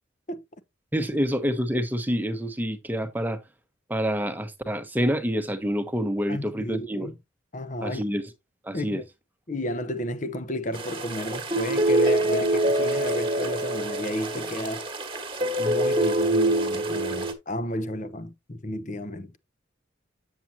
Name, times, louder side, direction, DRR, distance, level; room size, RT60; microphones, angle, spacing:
voice 1, 0.9-3.4 3.9-7.1 7.8-8.2 8.6-9.0, equal, 10° right, 1.0 m, -27 dB
voice 2, 6.3-7.2 7.5-8.0 8.7-9.0 9.5-14.9 15.6-19.3, left 1 dB, 40° left, 0.8 m, -32 dB
sound 1, 10.7-17.3, right 1 dB, 25° right, 1.5 m, -25 dB
9.0 x 7.4 x 2.8 m
head